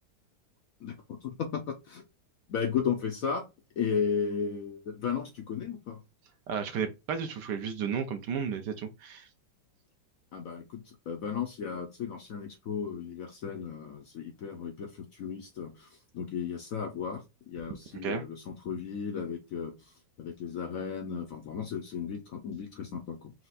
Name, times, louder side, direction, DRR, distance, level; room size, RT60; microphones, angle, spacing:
voice 1, 0.8-2.1 2.5-3.4 3.8-6.0 10.3-19.9 20.2-23.3, left 7 dB, 70° left, 0.8 m, -35 dB
voice 2, 6.5-9.3 17.7-17.8 18.0-18.2, right 7 dB, 70° right, 1.2 m, -33 dB
4.5 x 2.4 x 4.0 m
omnidirectional pair, 2.1 m